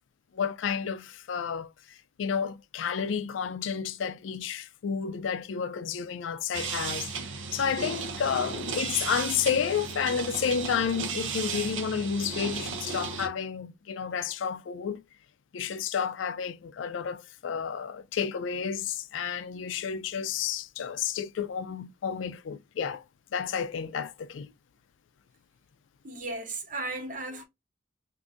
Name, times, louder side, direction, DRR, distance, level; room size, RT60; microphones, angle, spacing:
voice 1, 0.3-7.1 7.5-15.0 15.5-23.0 23.3-24.5 27.3-27.4, left 7 dB, 85° left, 0.4 m, -31 dB
sound 1, 6.5-13.3, right 5 dB, 85° right, 0.6 m, -35 dB
voice 2, 26.0-27.4, right 2 dB, 40° right, 0.8 m, -35 dB
2.6 x 2.5 x 3.4 m
head